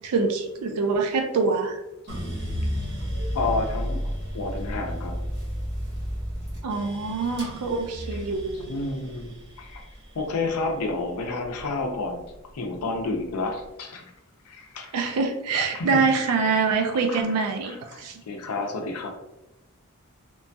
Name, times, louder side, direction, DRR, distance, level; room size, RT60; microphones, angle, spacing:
voice 1, 0.0-1.8 6.6-8.7 14.9-18.2, right 4 dB, 85° right, 4 dB, 0.4 m, -25 dB
sound 1, 2.1-12.3 12.7-13.5, equal, 50° right, 1.0 m, -33 dB
voice 2, 3.3-4.0 4.3-5.1 8.7-9.8 10.1-12.2 12.5-14.1 14.5-15.0 15.7-16.1 17.1-17.2 17.6-19.1, left 3 dB, 85° left, 4 dB, 0.5 m, -30 dB
3.0 x 2.2 x 2.6 m, 0.94 s
head